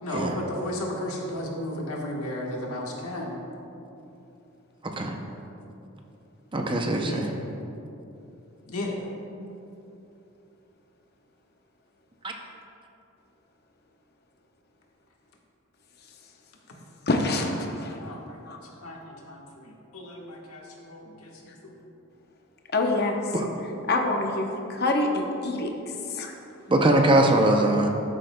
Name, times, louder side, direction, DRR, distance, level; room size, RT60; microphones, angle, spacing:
voice 1, 0.0-3.4 7.0-7.4 8.7-9.1 18.0-18.4 18.8-21.7, left 1 dB, 85° left, -1 dB, 1.3 m, -34 dB
voice 2, 6.5-7.3 12.2-12.3 23.3-23.5 26.7-27.9, right 1 dB, 25° right, 2 dB, 0.5 m, -21 dB
voice 3, 17.1-17.9 18.5-18.6 22.7-23.2 23.9-25.7 26.1-26.3, left 2 dB, 45° left, 2 dB, 0.8 m, -26 dB
13.0 x 7.6 x 2.2 m, 2.9 s
head